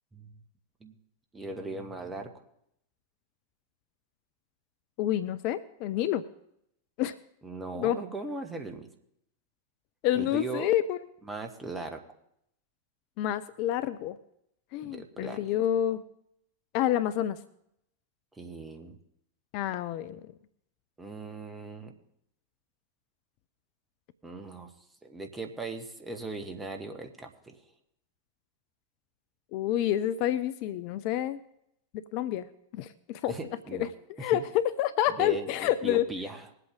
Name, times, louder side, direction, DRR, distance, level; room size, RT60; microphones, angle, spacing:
voice 1, 1.3-2.3 7.4-8.9 10.1-10.7 11.2-12.0 14.8-15.6 18.4-19.0 21.0-21.9 24.2-24.7 25.0-27.6 33.3-33.9 34.2-34.4 35.1-36.5, right 2 dB, 10° right, 4 dB, 1.6 m, -39 dB
voice 2, 5.0-6.2 7.0-7.2 7.8-8.0 10.0-11.0 13.2-14.2 14.7-16.0 16.7-17.4 19.5-20.2 29.5-31.4 32.1-32.5 32.7-33.3 34.2-36.0, left 12 dB, 45° left, 14 dB, 0.5 m, -28 dB
21.0 x 8.2 x 3.7 m, 0.74 s
figure-of-eight pair, 90°, 0 cm